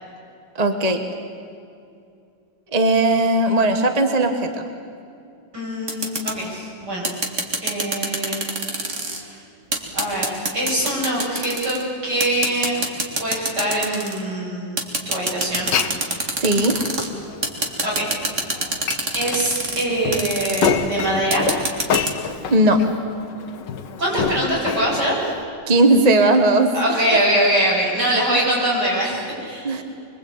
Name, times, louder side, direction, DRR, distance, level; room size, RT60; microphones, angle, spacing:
voice 1, 0.6-1.0 2.7-4.6 16.4-16.9 22.5-22.8 25.7-27.0 29.6-29.8, right 2 dB, 25° right, 6 dB, 1.4 m, -17 dB
voice 2, 5.5-7.2 7.6-8.4 9.1-9.4 9.9-10.2 10.5-12.8 13.2-14.7 15.1-15.7 17.8-18.1 19.1-21.4 24.0-25.3 26.7-29.7, right 1 dB, 65° right, -5 dB, 8.8 m, -23 dB
sound 1, 5.9-6.4 7.0-9.2 9.7-11.8 12.2-14.2 14.8-17.1 17.4-19.8 20.1-20.7 21.3-22.1, right 2 dB, 40° right, 2.6 m, -25 dB
Glass, 15.5-25.4, left 6 dB, 75° left, 1.7 m, -28 dB
25.5 x 23.0 x 8.8 m, 2.6 s
omnidirectional pair, 1.9 m